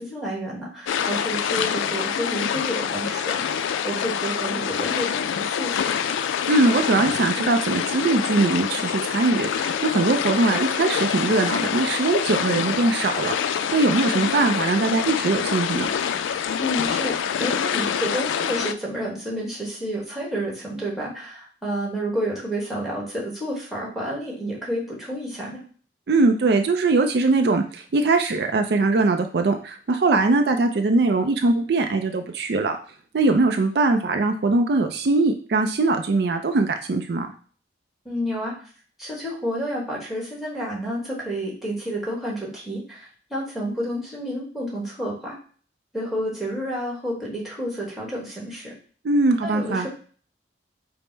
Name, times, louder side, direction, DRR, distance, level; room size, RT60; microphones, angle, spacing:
voice 1, 0.0-6.1 16.6-17.1 17.4-25.6 38.0-38.5 39.0-45.4 45.9-48.7 49.4-49.9, equal, ahead, -4 dB, 1.3 m, -30 dB
sound 1, 0.9-18.7, left 8 dB, 90° left, 0.3 m, -26 dB
voice 2, 6.5-15.9 26.1-32.8 33.1-37.3 49.0-49.9, right 3 dB, 60° right, 6 dB, 0.4 m, -21 dB
5.2 x 2.0 x 4.4 m, 0.43 s
head